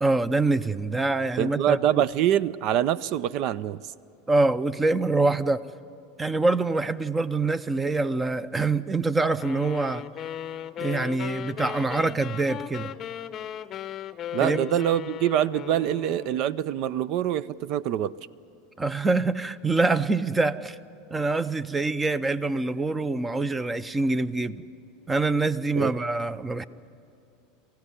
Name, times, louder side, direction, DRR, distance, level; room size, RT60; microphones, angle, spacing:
voice 1, 0.0-1.8 4.3-5.6 6.2-10.0 10.8-12.9 14.4-14.7 18.8-20.8 21.1-24.6 25.1-26.7, right 3 dB, 15° right, 16 dB, 0.7 m, -25 dB
voice 2, 1.4-3.8 14.3-18.2 25.8-26.0, right 11 dB, 55° right, 20 dB, 0.5 m, -25 dB
sound 1, 9.4-16.6, left 10 dB, 35° left, 0.7 m, -37 dB
23.5 x 15.5 x 9.9 m, 2.6 s
supercardioid pair, 120°, 0 cm